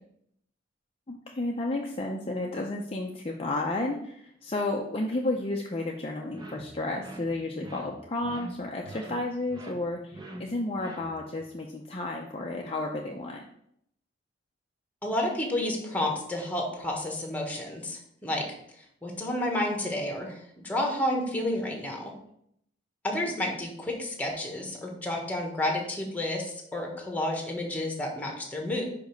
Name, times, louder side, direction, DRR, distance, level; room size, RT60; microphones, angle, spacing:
voice 1, 1.1-13.4, left 2 dB, 30° left, 0 dB, 0.6 m, -32 dB
sound 1, 6.3-11.4, right 1 dB, 20° right, 0.8 m, -45 dB
voice 2, 15.0-18.4 19.0-22.1 23.0-28.8, left 1 dB, 10° left, 1 dB, 1.3 m, -30 dB
5.2 x 5.2 x 5.2 m, 0.72 s
head